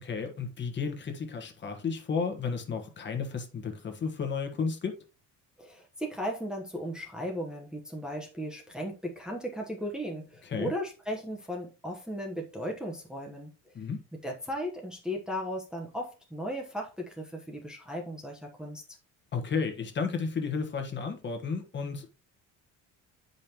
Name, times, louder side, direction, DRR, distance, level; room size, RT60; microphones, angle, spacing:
voice 1, 0.0-5.0 10.4-10.7 13.7-14.0 19.3-22.1, left 5 dB, 35° left, 1.4 m, -33 dB
voice 2, 5.6-13.5 14.2-18.8, equal, ahead, 1.1 m, -36 dB
9.6 x 5.4 x 2.9 m
cardioid pair, 145°, 33 cm